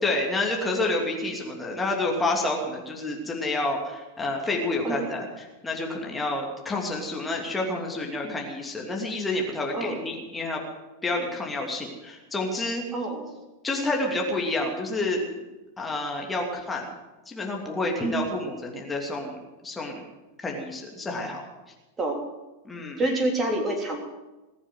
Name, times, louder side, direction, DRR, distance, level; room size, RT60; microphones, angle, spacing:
voice 1, 0.0-10.6 11.0-12.8 13.6-15.5 15.8-16.9 17.3-20.0 20.4-21.4 22.6-23.0, left 2 dB, 10° left, 0 dB, 2.8 m, -29 dB
voice 2, 12.9-13.2 18.0-18.2 22.0-22.3 23.0-24.0, right 2 dB, 20° right, 2 dB, 3.3 m, -27 dB
20.0 x 7.3 x 9.5 m, 1.1 s
figure-of-eight pair, 90°, 0 cm